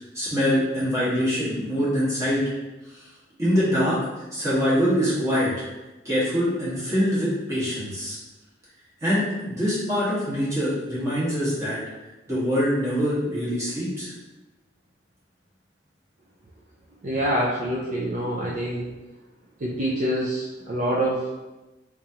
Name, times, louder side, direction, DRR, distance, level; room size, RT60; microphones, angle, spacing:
voice 1, 0.1-2.4 3.4-4.0 4.3-5.6 6.0-8.2 9.0-11.8 12.3-14.1, equal, 20° right, -10 dB, 1.4 m, -24 dB
voice 2, 17.0-18.9 19.6-21.3, right 1 dB, 45° right, -5 dB, 0.4 m, -26 dB
3.6 x 3.1 x 2.8 m, 1.1 s
head